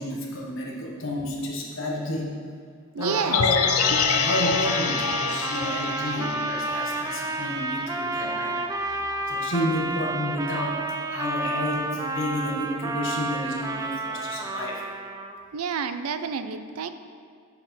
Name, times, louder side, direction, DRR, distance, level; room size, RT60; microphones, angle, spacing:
voice 1, 0.0-2.3 3.0-3.7 4.0-14.8, left 1 dB, 60° left, -1 dB, 1.2 m, -31 dB
voice 2, 2.9-3.4 15.5-16.9, right 6 dB, 85° right, 10 dB, 0.4 m, -29 dB
Trumpet, 3.0-15.4, right 2 dB, 15° right, 0.3 m, -31 dB
sound 1, 3.3-7.5 7.8-7.9, left 6 dB, 85° left, 0.5 m, -26 dB
7.9 x 4.3 x 5.8 m, 2.1 s
head